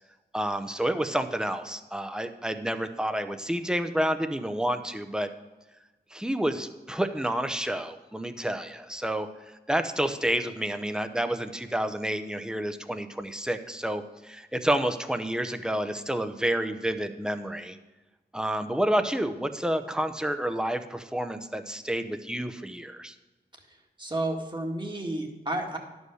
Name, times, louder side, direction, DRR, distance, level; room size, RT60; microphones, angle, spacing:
voice 1, 0.3-5.3 6.1-17.8 18.3-23.1, right 1 dB, 5° right, 8 dB, 0.8 m, -29 dB
voice 2, 23.7-25.8, right 1 dB, 25° right, 1 dB, 1.9 m, -32 dB
11.0 x 5.4 x 6.4 m, 1.1 s
wide cardioid pair, 60°, 17 cm